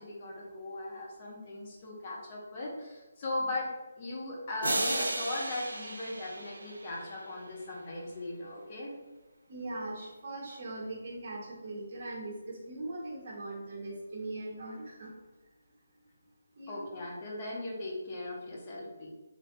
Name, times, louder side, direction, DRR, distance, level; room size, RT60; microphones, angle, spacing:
voice 1, 0.0-3.7 4.0-8.9 16.7-19.1, left 2 dB, 30° left, -3 dB, 0.7 m, -38 dB
sound 1, 4.6-7.5, right 1 dB, 90° right, 0.5 m, -34 dB
voice 2, 9.5-15.2 16.5-16.8, right 2 dB, 40° right, -4 dB, 1.0 m, -40 dB
3.3 x 2.6 x 2.6 m, 1.1 s
hypercardioid pair, 165°, 0 cm